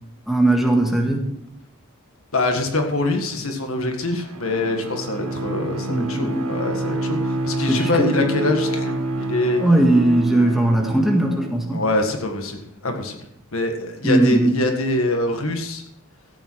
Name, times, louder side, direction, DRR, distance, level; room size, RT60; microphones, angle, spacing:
voice 1, 0.3-1.3 5.9-6.5 7.7-8.1 9.6-11.8 14.0-14.5, right 1 dB, ahead, 1 dB, 1.7 m, -18 dB
voice 2, 2.3-9.6 11.7-13.2 13.5-15.8, left 2 dB, 75° left, 4 dB, 1.7 m, -24 dB
Bowed string instrument, 4.0-11.7, right 1 dB, 90° right, 1.6 m, -28 dB
14.0 x 8.7 x 4.7 m, 0.80 s
head